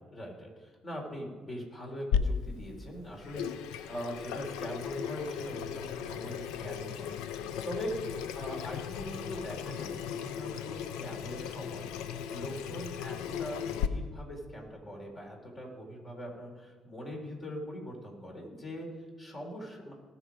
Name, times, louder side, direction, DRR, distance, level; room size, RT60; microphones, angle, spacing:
voice 1, 0.1-7.9 8.3-19.9, equal, 35° left, 0 dB, 4.1 m, -42 dB
Water tap faucet / Sink (filling or washing), 2.1-13.9, left 8 dB, 80° left, 0.5 m, -36 dB
18.5 x 6.2 x 5.1 m, 1.4 s
hypercardioid pair, 55°, 0 cm